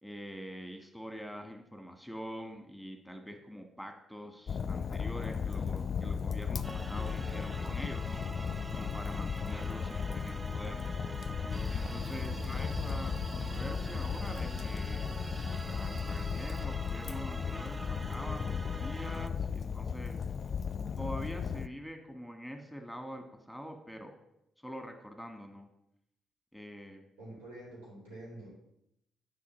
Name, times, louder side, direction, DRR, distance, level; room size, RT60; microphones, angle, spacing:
voice 1, 0.0-8.2 8.7-10.8 11.7-20.2 21.0-24.2 24.6-25.7 26.5-27.1, equal, ahead, 5 dB, 1.8 m, -45 dB
Fire, 4.5-21.7, left 6 dB, 50° left, 0.5 m, -36 dB
sound 1, 6.6-19.3, right 2 dB, 20° right, 0.5 m, -46 dB
sound 2, 11.5-16.6, right 2 dB, 45° right, 2.1 m, -45 dB
voice 2, 12.4-12.8 27.2-28.5, right 1 dB, 85° right, -5 dB, 4.5 m, -48 dB
8.3 x 5.5 x 7.4 m, 0.80 s
hypercardioid pair, 45°, 0 cm